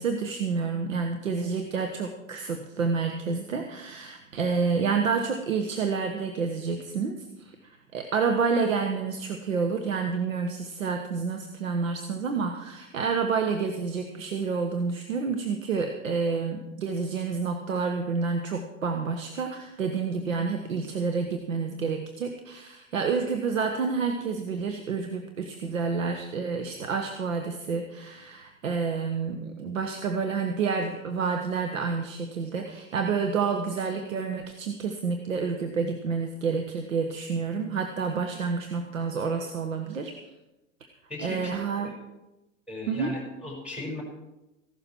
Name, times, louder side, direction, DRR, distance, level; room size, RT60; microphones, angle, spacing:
voice 1, 0.0-40.2 41.2-41.9 42.9-43.1, right 5 dB, 75° right, 4 dB, 1.3 m, -29 dB
voice 2, 41.1-42.0 42.7-44.0, left 2 dB, 5° right, -1 dB, 5.6 m, -37 dB
15.5 x 11.5 x 4.5 m, 0.96 s
figure-of-eight pair, 90°, 40 cm